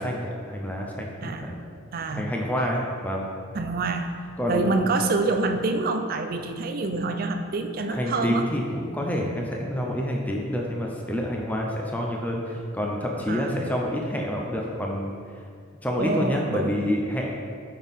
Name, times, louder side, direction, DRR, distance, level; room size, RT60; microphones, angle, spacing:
voice 1, 0.0-1.6 2.1-3.2 4.4-4.8 7.9-15.1 15.8-17.3, equal, 5° left, -1 dB, 0.5 m, -28 dB
voice 2, 1.9-2.2 3.5-4.1 4.5-8.5 13.3-13.5 16.0-16.8, right 3 dB, 45° right, 6 dB, 0.4 m, -26 dB
6.2 x 5.5 x 3.5 m, 2.2 s
head